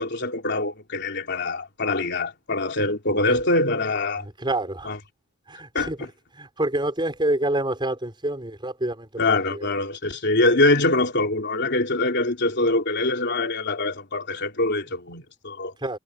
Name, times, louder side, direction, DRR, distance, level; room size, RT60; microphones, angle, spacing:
voice 1, 0.0-4.2 4.8-5.0 5.7-6.1 9.2-15.7, left 2 dB, 55° left, 3.4 m, -24 dB
voice 2, 4.2-4.9 5.5-6.0 6.3-9.7 15.8-16.0, right 1 dB, 20° right, 5.6 m, -27 dB
head